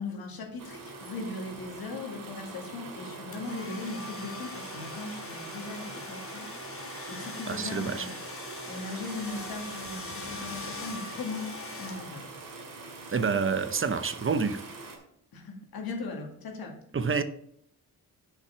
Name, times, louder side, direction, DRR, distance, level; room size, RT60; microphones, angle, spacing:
voice 1, 0.0-8.1 8.7-12.4 15.3-16.8, left 3 dB, 75° left, 2.0 m, -39 dB
sound 1, 0.6-15.0, right 3 dB, 65° right, 2.2 m, -43 dB
sound 2, 3.3-12.5, left 3 dB, 35° left, 1.4 m, -42 dB
voice 2, 7.5-8.1 13.1-14.6 16.9-17.2, right 5 dB, 35° right, 0.7 m, -28 dB
6.8 x 5.8 x 5.8 m
cardioid pair, 80°, 36 cm